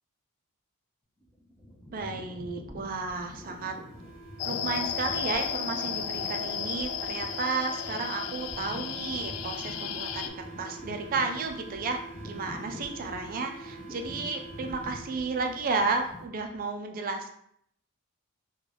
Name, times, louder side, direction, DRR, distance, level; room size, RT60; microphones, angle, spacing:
sound 1, 1.2-16.7, left 1 dB, 10° left, 0.5 m, -46 dB
voice 1, 1.9-3.8 4.4-10.3 10.6-12.0 12.2-17.3, right 4 dB, 40° right, 4 dB, 0.4 m, -32 dB
sound 2, 3.5-15.6, right 3 dB, 40° left, 1.1 m, -46 dB
sound 3, 4.4-10.3, left 8 dB, 80° left, 0.3 m, -34 dB
3.7 x 2.3 x 3.2 m, 0.69 s
head